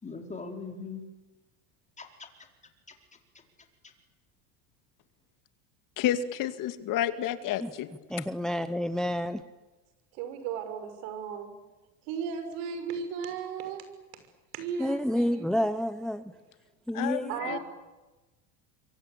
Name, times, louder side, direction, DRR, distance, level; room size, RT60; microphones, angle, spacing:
voice 1, 0.0-1.0 2.0-2.3 17.4-17.6, left 4 dB, 15° left, 4 dB, 4.6 m, -40 dB
voice 2, 6.0-7.9 16.9-17.6, left 11 dB, 50° left, 10 dB, 2.3 m, -30 dB
voice 3, 8.1-9.4 14.8-16.2 16.9-17.3, equal, ahead, 12 dB, 0.8 m, -29 dB
voice 4, 10.1-11.5 12.0-13.9 14.5-15.7 17.3-17.6, right 7 dB, 65° right, 9 dB, 5.9 m, -36 dB
26.5 x 24.0 x 8.7 m, 1.2 s
supercardioid pair, 115°, 41 cm